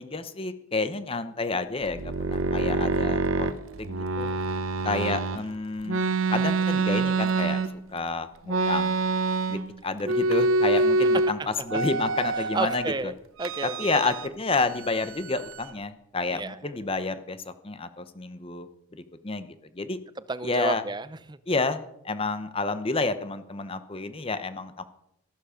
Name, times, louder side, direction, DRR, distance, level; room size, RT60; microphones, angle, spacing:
voice 1, 0.0-4.3 4.8-6.0 6.3-7.6 7.9-9.0 9.5-12.8 13.6-18.7 19.2-19.5 19.8-20.0 20.4-20.8 21.5-24.8, left 3 dB, 25° left, 11 dB, 0.8 m, -30 dB
sound 1, 1.8-5.4 5.9-8.0 8.5-9.7 10.0-11.3 11.7-12.9 13.4-14.3 14.5-15.7, right 3 dB, 85° right, 0.9 m, -26 dB
voice 2, 10.8-11.2 12.3-13.7 16.3-16.6 20.3-21.4, right 3 dB, 20° right, 15 dB, 0.6 m, -32 dB
14.0 x 12.0 x 5.1 m, 0.77 s
head